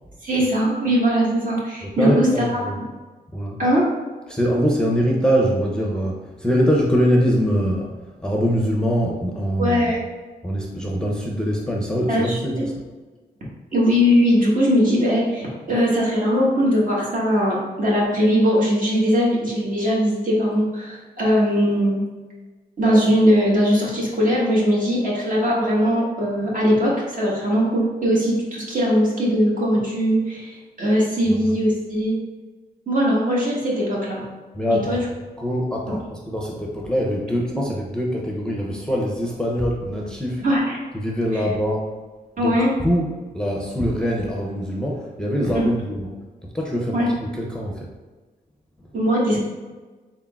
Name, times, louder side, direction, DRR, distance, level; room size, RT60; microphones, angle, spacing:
voice 1, 0.2-2.3 3.6-3.8 9.6-10.0 12.1-12.7 13.7-22.0 22.8-32.1 32.9-34.2 34.7-35.0 35.9-36.0 40.4-40.8 42.4-42.7 45.5-45.6 46.9-47.1 48.9-49.4, equal, 50° right, -5 dB, 1.5 m, -20 dB
voice 2, 2.0-2.8 3.3-3.6 4.3-7.9 8.2-9.9 10.4-12.8 31.3-31.4 34.5-35.0 35.4-40.4 40.9-41.9 42.4-42.6 42.8-46.1 46.4-47.9, equal, 5° left, -2 dB, 0.6 m, -23 dB
3.8 x 3.6 x 2.4 m, 1.3 s
cardioid pair, 55°, 17 cm